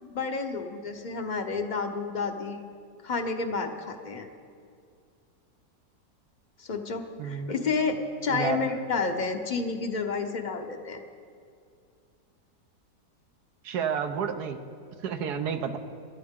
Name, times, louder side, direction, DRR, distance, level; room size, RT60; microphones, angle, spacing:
voice 1, 0.0-2.6 3.0-4.3 6.6-11.0, left 4 dB, 35° left, 5 dB, 0.9 m, -30 dB
voice 2, 7.2-7.6 8.3-8.6 13.6-14.6 15.0-15.8, right 7 dB, 75° right, 7 dB, 1.3 m, -30 dB
24.0 x 11.5 x 3.7 m, 2.3 s
omnidirectional pair, 1.8 m